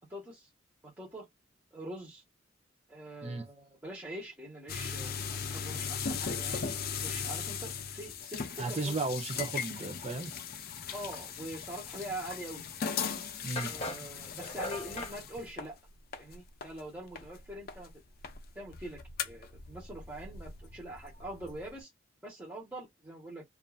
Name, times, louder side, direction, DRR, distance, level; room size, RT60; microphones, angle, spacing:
voice 1, 0.1-0.5 0.8-1.3 1.7-2.2 2.9-6.7 7.0-8.9 10.9-12.6 12.9-13.2 13.6-15.8 16.2-17.9 18.5-21.9 22.2-23.4, right 1 dB, 10° right, 1.1 m, -44 dB
sound 1, 4.7-17.9 18.2-21.8, left 6 dB, 50° left, 0.5 m, -39 dB
voice 2, 8.6-10.3 13.4-13.7, right 3 dB, 30° right, 0.7 m, -34 dB
sound 2, 12.7-12.8 13.6-15.2, left 2 dB, 30° left, 1.0 m, -39 dB
2.6 x 2.5 x 2.4 m
head